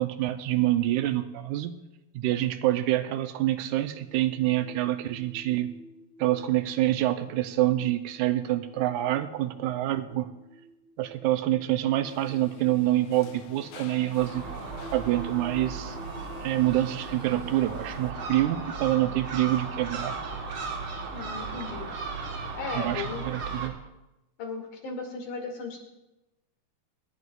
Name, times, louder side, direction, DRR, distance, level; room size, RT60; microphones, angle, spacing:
voice 1, 0.0-1.8 2.1-5.8 6.2-10.3 11.0-14.4 14.9-16.0 16.4-20.2 22.7-23.8, right 14 dB, 85° right, 10 dB, 2.1 m, -26 dB
sound 1, 3.7-20.0, equal, 5° left, 1.1 m, -52 dB
sound 2, 12.0-18.1, left 9 dB, 70° left, 1.5 m, -49 dB
Gull seagull, 14.2-23.7, right 4 dB, 50° right, 1.9 m, -36 dB
voice 2, 21.1-21.9 22.5-23.3 24.4-25.8, left 4 dB, 85° left, 0 dB, 3.8 m, -36 dB
26.0 x 11.0 x 2.4 m, 0.98 s
omnidirectional pair, 3.4 m